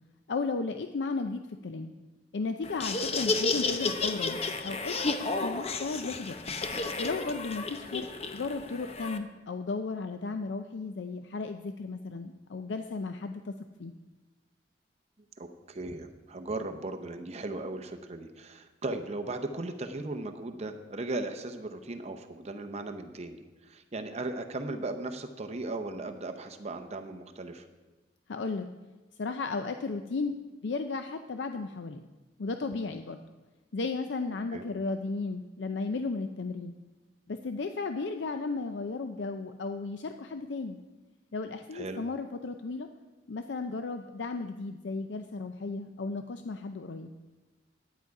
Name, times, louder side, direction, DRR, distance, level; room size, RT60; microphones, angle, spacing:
voice 1, 0.3-1.9 2.3-5.0 5.4-6.4 7.0-8.1 8.3-13.5 13.8-13.9 28.3-28.7 29.2-30.4 30.6-32.0 32.4-33.2 33.7-36.7 37.3-40.8 41.3-42.9 43.3-47.1, left 3 dB, 75° left, 7 dB, 0.5 m, -34 dB
Laughter, 2.6-9.2, left 3 dB, 35° left, 0.7 m, -32 dB
voice 2, 15.4-27.7 34.5-34.6 41.7-42.0, right 2 dB, 35° right, 7 dB, 0.8 m, -37 dB
11.0 x 9.4 x 4.7 m, 1.2 s
head